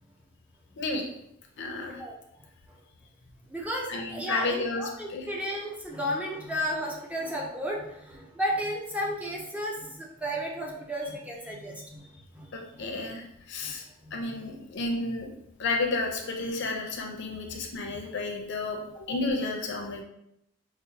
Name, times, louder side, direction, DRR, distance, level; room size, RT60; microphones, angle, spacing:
voice 1, 1.6-2.0 3.9-4.8 5.1-5.3 12.5-13.8 14.1-15.3 15.6-18.8 19.1-20.0, left 3 dB, 55° left, 2 dB, 0.6 m, -31 dB
voice 2, 3.5-12.0 12.3-12.8 13.6-13.7 14.0-14.2, equal, 5° right, -2 dB, 0.5 m, -33 dB
5.1 x 2.1 x 2.8 m, 0.78 s
head